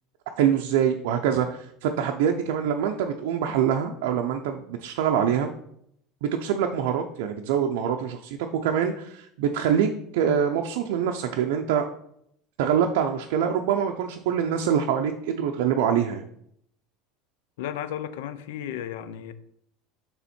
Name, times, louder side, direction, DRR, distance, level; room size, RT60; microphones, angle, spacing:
voice 1, 0.4-5.5 6.2-8.4 8.6-11.8 12.6-16.2, right 8 dB, 80° right, 0.5 m, -25 dB
voice 2, 17.6-19.3, left 10 dB, 90° left, 0.5 m, -34 dB
6.9 x 3.5 x 4.3 m
cardioid pair, 160°, 0 cm